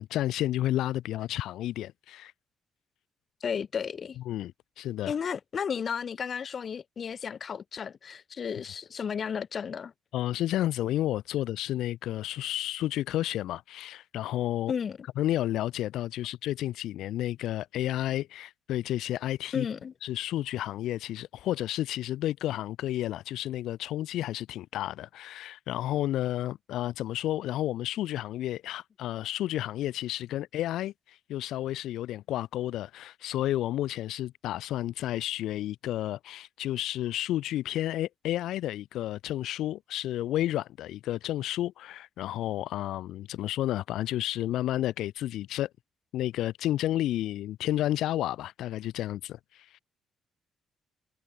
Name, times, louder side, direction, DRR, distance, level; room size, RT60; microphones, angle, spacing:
voice 1, 0.0-2.3 4.3-4.5 4.8-5.2 10.1-14.7 15.2-19.7 20.0-45.7 46.1-49.8, left 13 dB, 85° left, 4.2 m, -31 dB
voice 2, 3.4-4.2 5.1-9.9 14.7-15.0 19.5-19.9, left 7 dB, 50° left, 7.0 m, -33 dB
cardioid pair, 90°, 0 cm